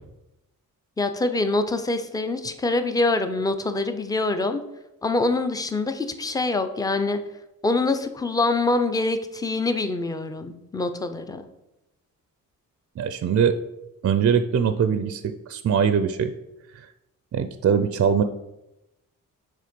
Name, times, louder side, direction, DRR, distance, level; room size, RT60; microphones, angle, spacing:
voice 1, 1.0-4.6 5.0-7.2 7.6-11.5, left 2 dB, 10° left, 8 dB, 0.5 m, -25 dB
voice 2, 13.0-13.6 14.0-16.3 16.7-16.9 17.3-18.2, right 7 dB, 45° right, 9 dB, 0.4 m, -22 dB
6.6 x 3.5 x 5.2 m, 0.92 s
cardioid pair, 100°, 34 cm